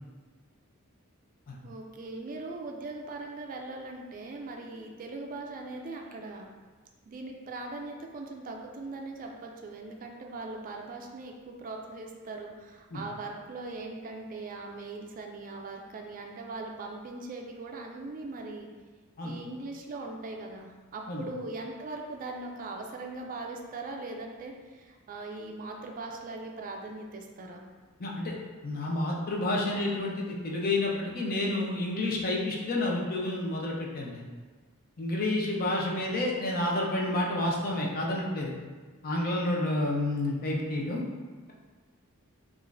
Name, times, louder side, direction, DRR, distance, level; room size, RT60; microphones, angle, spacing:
voice 1, 1.6-6.5 7.1-18.7 19.2-27.6, right 2 dB, 40° right, 1 dB, 0.4 m, -40 dB
voice 2, 28.0-28.3 28.6-34.3 35.0-38.5 39.0-41.0, left 2 dB, 40° left, -2 dB, 0.6 m, -29 dB
4.9 x 2.5 x 2.5 m, 1.4 s
head